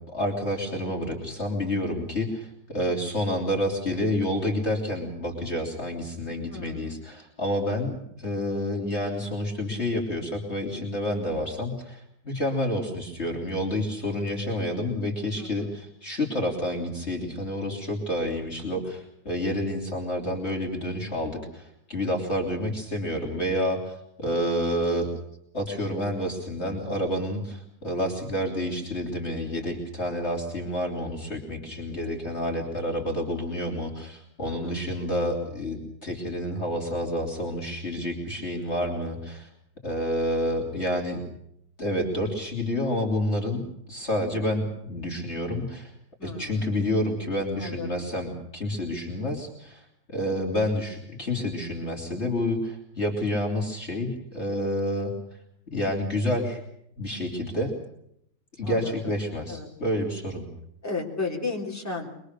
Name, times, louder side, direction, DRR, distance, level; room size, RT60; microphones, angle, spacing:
voice 1, 0.1-25.1 25.5-39.5 39.8-41.2 41.8-45.9 46.2-49.8 50.1-55.1 55.7-56.6 57.0-57.7 58.6-60.4, left 1 dB, 35° left, 0 dB, 3.5 m, -29 dB
voice 2, 6.5-7.0 15.4-15.7 24.2-24.6 34.4-34.9 46.2-46.8 47.6-48.1 58.6-59.1 59.5-59.7 60.8-62.1, left 3 dB, 10° left, -2 dB, 3.8 m, -35 dB
24.0 x 22.5 x 6.6 m, 0.74 s
omnidirectional pair, 1.9 m